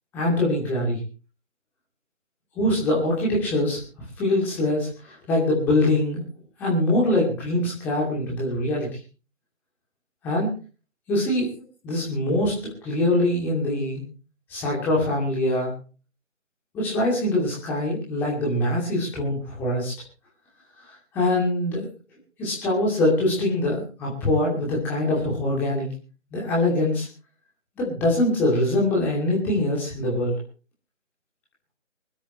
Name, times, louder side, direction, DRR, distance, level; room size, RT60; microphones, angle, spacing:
voice 1, 0.1-1.0 2.6-3.8 4.2-6.2 6.6-8.9 10.2-10.5 11.1-11.5 11.8-14.0 14.5-15.7 16.7-19.9 21.1-21.9 22.4-25.9 26.3-27.1 27.8-30.3, left 1 dB, 5° left, -4 dB, 2.6 m, -23 dB
24.0 x 12.5 x 3.1 m, 0.35 s
figure-of-eight pair, 155°, 38 cm